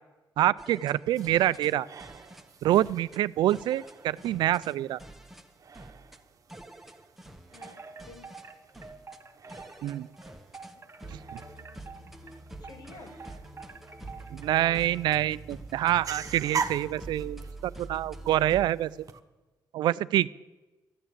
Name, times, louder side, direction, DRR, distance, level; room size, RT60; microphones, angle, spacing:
voice 1, 0.4-1.9 2.6-5.0 9.8-10.1 11.1-11.2 14.3-19.0 19.7-20.3, right 13 dB, 85° right, 19 dB, 0.4 m, -26 dB
sound 1, 0.6-1.7 2.0-2.5 2.7-3.2 3.5-4.7 5.0-5.4 5.7-6.2 6.5-7.7 8.0-8.4 8.7-9.2 9.5-10.7 11.0-18.7, right 2 dB, 5° right, 1.4 m, -46 dB
sound 2, 1.1-19.2, right 6 dB, 50° right, 1.0 m, -44 dB
voice 2, 7.5-8.3 10.8-10.9 11.5-12.3 12.6-13.2 16.2-16.3, left 3 dB, 65° left, 4 dB, 2.7 m, -53 dB
Wind chime, 7.5-14.9, right 4 dB, 35° right, 1.9 m, -48 dB
13.0 x 9.0 x 8.5 m, 1.2 s
cardioid pair, 85°, 7 cm